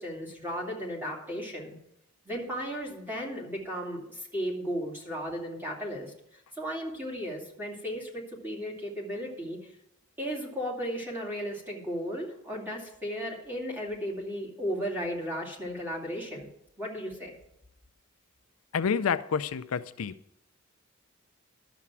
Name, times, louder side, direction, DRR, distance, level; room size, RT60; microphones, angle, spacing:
voice 1, 0.0-1.8 2.2-6.1 6.5-9.7 10.2-16.5 16.8-17.3, equal, 10° right, 2.6 m, -35 dB
voice 2, 18.7-20.1, left 6 dB, 80° left, 0.4 m, -28 dB
12.0 x 7.1 x 6.0 m
head